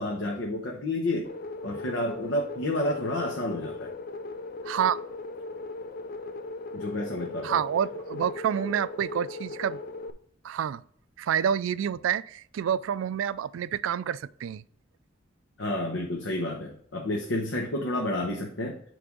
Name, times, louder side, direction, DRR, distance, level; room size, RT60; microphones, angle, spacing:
voice 1, 0.0-1.3 1.6-3.9 6.7-7.6 15.6-18.8, left 1 dB, 65° left, 0.9 m, -30 dB
sound 1, 1.2-10.1, left 3 dB, 45° left, 0.5 m, -38 dB
voice 2, 4.6-5.0 7.4-9.8 10.4-10.8 11.2-14.6, right 8 dB, 80° right, 0.3 m, -28 dB
9.4 x 3.4 x 3.8 m
head